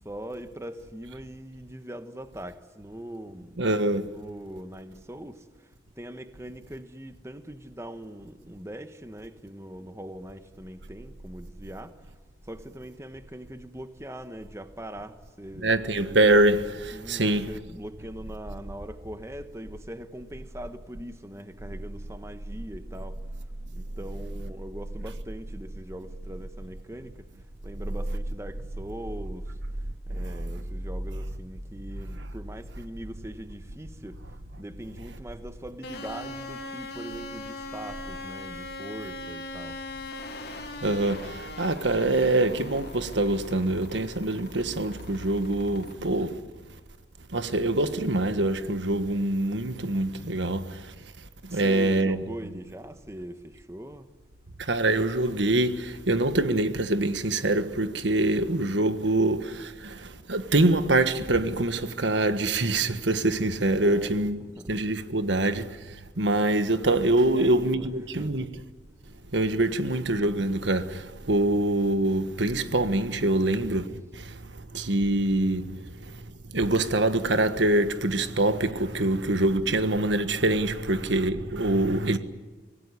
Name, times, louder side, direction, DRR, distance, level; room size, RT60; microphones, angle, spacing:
voice 1, 0.0-3.6 4.1-12.2 12.4-15.7 16.9-23.5 23.7-27.3 27.6-29.6 30.1-39.8 51.5-54.1 63.8-64.1 64.6-64.7 67.2-68.5 82.0-82.2, right 1 dB, 15° right, 1.2 m, -41 dB
voice 2, 3.6-4.1 15.6-17.4 30.1-30.3 40.8-46.4 47.3-50.9 51.4-52.2 54.6-64.4 64.7-68.6 69.3-76.3 76.5-82.2, right 2 dB, 80° right, 1.5 m, -25 dB
sound 1, 35.8-45.9, left 2 dB, 60° left, 3.2 m, -40 dB
25.5 x 18.0 x 9.8 m
head